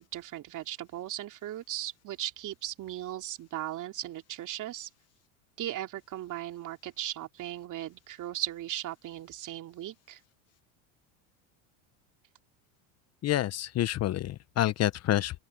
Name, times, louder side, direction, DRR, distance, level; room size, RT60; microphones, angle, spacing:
voice 1, 0.0-4.9 5.6-10.2, right 13 dB, 45° right, 2.9 m, -37 dB
voice 2, 13.2-15.4, left 13 dB, 40° left, 0.9 m, -28 dB
open air
supercardioid pair, 105°, 41 cm